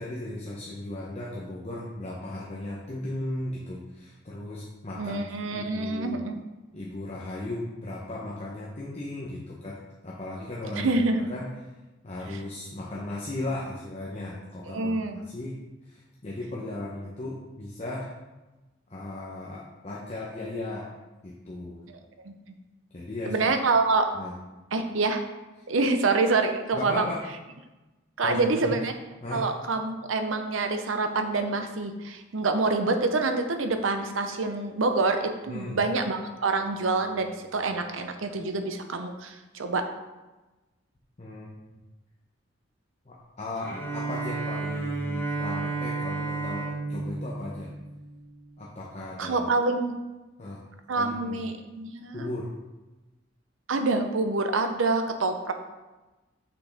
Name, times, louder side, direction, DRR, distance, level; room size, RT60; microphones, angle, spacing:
voice 1, 0.0-6.2 6.7-11.0 11.3-11.7 12.0-15.6 15.8-18.1 18.9-20.9 21.2-21.8 22.9-23.5 24.1-24.3 26.7-27.2 28.2-28.8 29.2-29.5 35.5-35.8 41.2-41.6 43.1-47.7 48.6-49.4 50.4-50.6 51.0-51.4 52.1-52.5, left 1 dB, 35° left, -4 dB, 0.8 m, -36 dB
voice 2, 5.0-6.4 10.7-11.3 12.3-12.4 14.7-15.2 22.2-22.3 23.3-24.1 24.7-25.2 25.7-27.1 28.2-28.9 29.3-39.8 49.2-49.9 50.9-52.3 53.7-55.5, right 3 dB, 85° right, 7 dB, 0.7 m, -26 dB
Bowed string instrument, 43.6-48.6, right 3 dB, 10° left, 1.0 m, -32 dB
6.2 x 6.0 x 3.4 m, 1.1 s
head